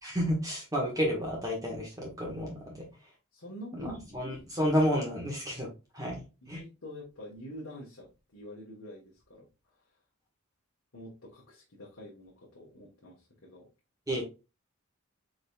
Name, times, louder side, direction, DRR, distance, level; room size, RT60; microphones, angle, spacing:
voice 1, 0.0-2.8 3.7-5.7 5.9-6.6 14.1-14.2, equal, 15° right, -3 dB, 1.4 m, -31 dB
voice 2, 3.3-4.6 6.5-9.5 10.9-13.7, left 1 dB, 70° left, -3 dB, 1.3 m, -46 dB
5.1 x 3.9 x 2.3 m, 0.29 s
head